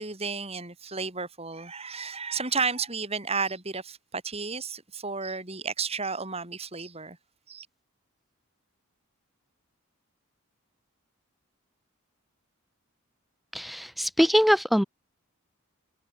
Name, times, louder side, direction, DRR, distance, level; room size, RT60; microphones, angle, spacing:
voice 1, 0.0-7.2 7.5-7.7, right 5 dB, 30° right, 6.8 m, -32 dB
voice 2, 13.5-14.8, equal, ahead, 1.3 m, -22 dB
head